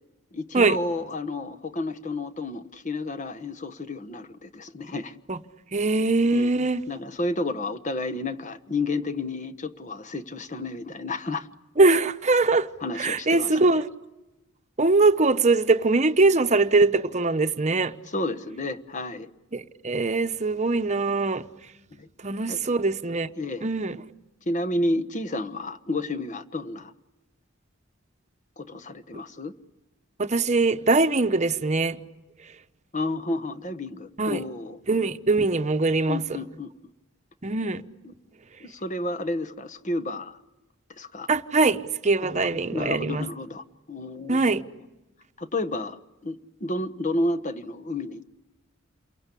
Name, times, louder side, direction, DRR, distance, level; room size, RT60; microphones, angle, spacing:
voice 1, 0.3-5.1 6.3-6.5 6.9-11.5 12.8-13.7 18.1-19.3 22.0-22.1 22.5-22.6 23.4-23.7 24.5-26.9 28.6-29.5 32.9-34.8 36.1-36.7 38.0-38.1 38.6-40.4 41.0-41.3 42.2-44.6 45.4-48.3, left 2 dB, 35° left, 1.3 m, -31 dB
voice 2, 5.7-6.8 11.8-12.7 13.0-13.9 14.8-17.9 19.5-21.5 22.2-23.3 23.6-24.0 30.2-32.0 34.2-34.4 34.9-36.2 37.4-37.8 41.3-43.3 44.3-44.6, right 3 dB, 35° right, 1.0 m, -22 dB
29.0 x 23.0 x 8.4 m
head